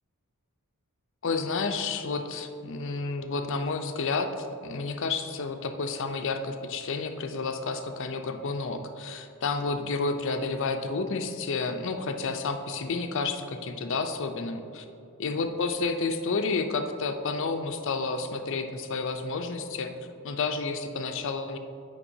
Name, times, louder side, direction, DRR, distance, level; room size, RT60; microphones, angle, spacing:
voice 1, 1.2-14.8 15.2-19.9 20.2-21.6, left 4 dB, 60° left, 7 dB, 0.5 m, -30 dB
9.9 x 5.2 x 2.7 m, 2.6 s
head